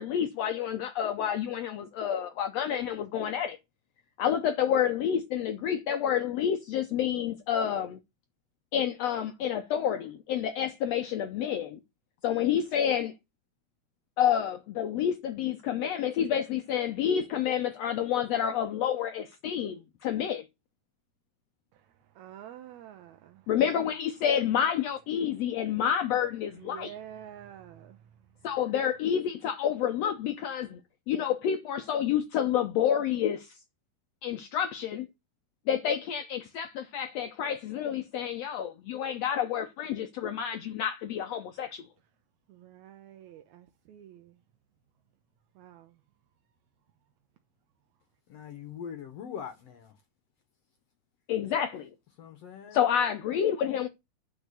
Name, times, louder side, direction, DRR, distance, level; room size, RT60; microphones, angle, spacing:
voice 1, 0.0-3.6 4.2-8.0 8.7-11.8 12.2-13.1 14.2-20.4 23.5-26.9 28.4-30.8 31.1-33.5 34.2-35.1 35.7-41.9 51.3-51.9 52.7-53.9, left 9 dB, 90° left, 1.4 m, -29 dB
voice 2, 22.2-23.5 26.6-28.0 42.5-44.4 45.6-45.9, right 10 dB, 70° right, 1.9 m, -48 dB
voice 3, 48.3-49.9 52.2-52.8, left 8 dB, 65° left, 1.6 m, -42 dB
9.1 x 4.7 x 6.9 m
omnidirectional pair, 3.8 m